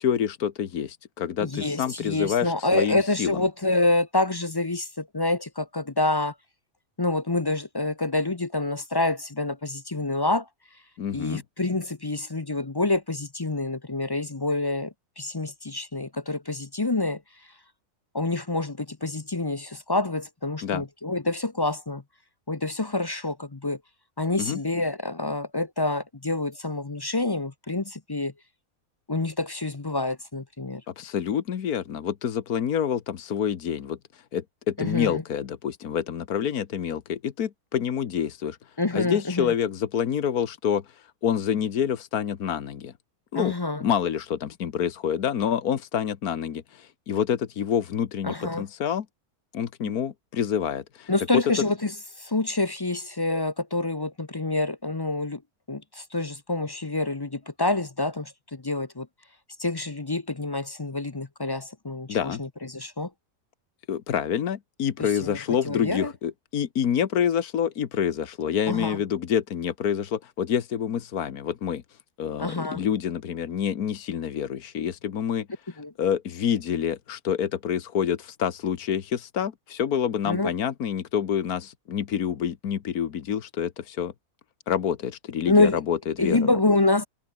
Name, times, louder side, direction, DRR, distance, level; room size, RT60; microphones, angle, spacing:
voice 1, 0.0-3.4 11.0-11.4 20.6-20.8 24.4-24.6 30.9-38.6 38.9-42.9 43.3-43.5 43.8-49.0 49.5-51.4 62.1-62.4 63.9-71.8 72.2-75.5 76.0-84.1 84.7-86.5, left 8 dB, 80° left, 1.7 m, -27 dB
voice 2, 1.4-6.3 7.0-10.5 11.1-17.2 18.1-22.0 22.5-23.8 24.2-28.3 29.1-30.8 34.8-35.2 38.8-39.5 43.3-43.8 48.2-48.6 49.8-49.9 51.1-55.4 55.7-59.1 59.6-63.1 65.0-66.1 68.7-69.0 72.4-72.8 75.8-75.9 80.2-80.5 85.5-85.8 86.2-87.1, left 2 dB, 25° left, 0.6 m, -27 dB
omnidirectional pair, 1.5 m